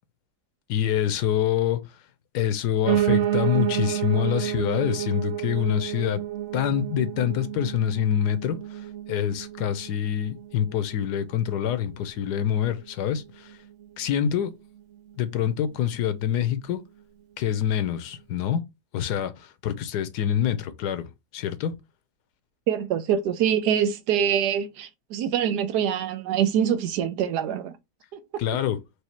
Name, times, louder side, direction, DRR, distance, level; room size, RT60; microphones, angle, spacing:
voice 1, 0.7-1.8 2.3-6.2 6.5-13.6 14.0-14.5 15.2-16.8 17.4-18.6 18.9-21.8 28.4-28.8, left 10 dB, 80° left, 1.2 m, -26 dB
Piano, 2.9-12.0 12.4-13.5 13.8-13.9 14.1-14.2 14.5-14.6 15.1-15.2, right 12 dB, 65° right, 0.8 m, -30 dB
voice 2, 22.7-27.7 28.1-28.2, right 9 dB, 80° right, 1.2 m, -24 dB
4.8 x 2.8 x 3.0 m
omnidirectional pair, 1.8 m